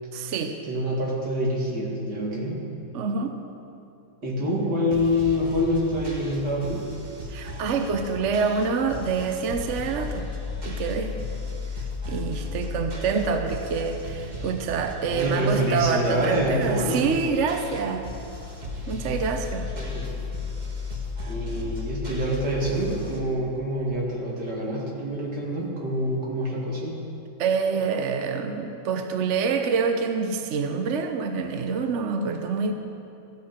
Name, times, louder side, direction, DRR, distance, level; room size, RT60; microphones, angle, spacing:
voice 1, 0.1-0.6 2.9-3.3 7.3-10.3 10.6-11.1 12.1-18.1 18.9-19.7 27.4-32.7, right 5 dB, 55° right, 6 dB, 0.9 m, -26 dB
voice 2, 0.7-2.7 4.2-6.9 15.1-17.0 19.7-20.1 21.3-27.1, equal, 75° right, -4 dB, 3.0 m, -26 dB
sound 1, 4.9-23.2, left 3 dB, 25° right, 1.4 m, -35 dB
14.5 x 14.0 x 4.4 m, 2.7 s
omnidirectional pair, 1.8 m